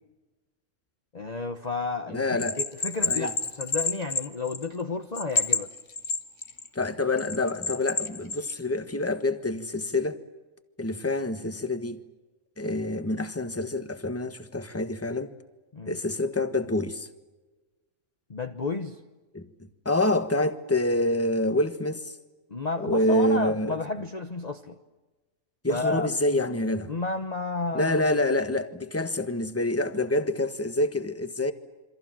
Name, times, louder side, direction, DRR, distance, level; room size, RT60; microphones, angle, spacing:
voice 1, 1.1-5.7 15.7-16.0 18.3-19.0 22.5-24.8 25.7-26.1 26.9-28.1, left 3 dB, 30° left, 1.2 m, -31 dB
voice 2, 2.1-2.6 3.0-3.3 6.7-10.2 10.8-12.0 12.6-15.3 15.8-17.1 19.3-19.5 19.8-22.2 22.8-23.7 25.6-26.9 27.7-31.5, left 1 dB, 10° left, 1.4 m, -27 dB
Bell, 2.4-4.8 5.1-6.7 7.2-8.6, left 4 dB, 60° left, 2.1 m, -28 dB
28.0 x 25.5 x 7.5 m
omnidirectional pair, 1.4 m